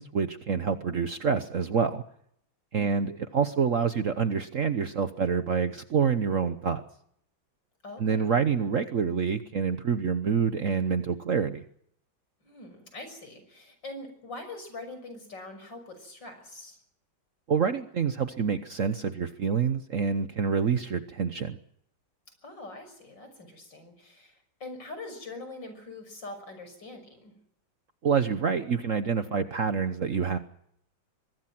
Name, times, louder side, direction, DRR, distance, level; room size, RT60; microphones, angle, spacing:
voice 1, 0.0-2.0 2.7-6.8 8.0-11.6 17.5-21.6 28.0-30.4, right 6 dB, 50° right, 10 dB, 1.1 m, -27 dB
voice 2, 7.8-8.3 12.4-16.8 22.4-27.3, left 2 dB, 65° left, 8 dB, 6.8 m, -43 dB
23.5 x 21.5 x 6.0 m, 0.71 s
omnidirectional pair, 2.1 m